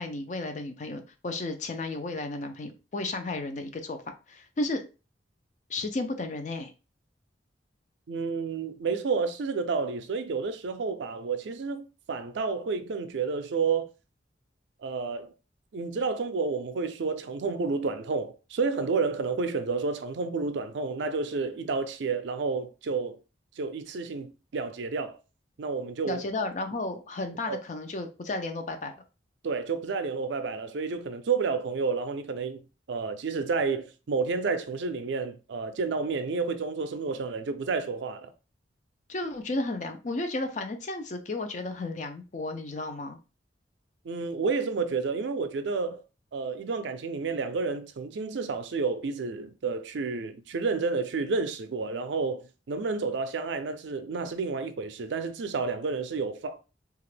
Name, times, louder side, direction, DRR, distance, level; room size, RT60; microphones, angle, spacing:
voice 1, 0.0-4.0 4.3-4.8 5.7-6.7 26.1-29.0 39.1-43.2, left 2 dB, 40° left, 0.4 m, -33 dB
voice 2, 8.1-13.9 14.8-15.3 15.7-23.2 23.6-25.2 25.6-26.4 27.5-27.6 29.4-32.6 32.9-38.3 44.0-46.0 46.3-56.6, right 4 dB, 75° right, 0.4 m, -30 dB
2.9 x 2.4 x 3.2 m
head